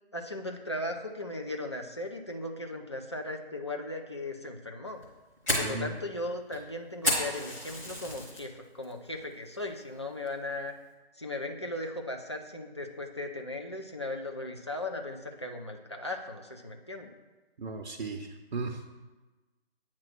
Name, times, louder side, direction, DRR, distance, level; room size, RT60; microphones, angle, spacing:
voice 1, 0.1-5.0 5.6-10.7 11.2-17.1, left 2 dB, 30° left, 2 dB, 0.4 m, -37 dB
Fire, 4.9-8.4 8.8-9.2 9.6-9.7 10.3-10.6, left 1 dB, 10° left, 1.0 m, -32 dB
voice 2, 5.6-5.9 17.6-18.9, right 3 dB, 55° right, 3 dB, 0.6 m, -36 dB
8.5 x 3.0 x 6.0 m, 1.2 s
figure-of-eight pair, 145°, 32 cm